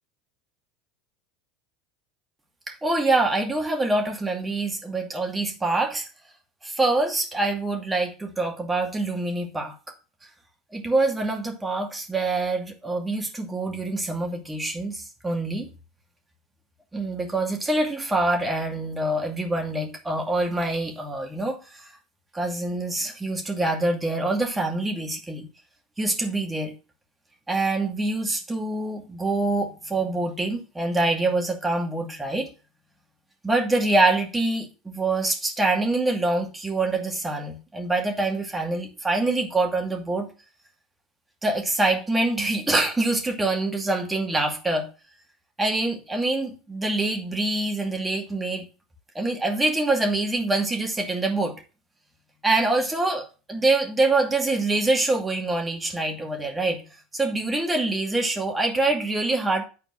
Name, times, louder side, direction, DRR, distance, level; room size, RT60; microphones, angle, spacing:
voice 1, 2.7-6.1 6.6-9.7 10.7-15.7 16.9-21.9 22.3-25.5 26.0-26.7 27.5-32.5 33.4-40.3 41.4-44.9 45.6-48.7 49.1-51.6 52.4-56.8 57.1-59.6, right 2 dB, 15° right, 2.4 m, -25 dB
9.6 x 4.4 x 6.1 m
hypercardioid pair, 80°, 0 cm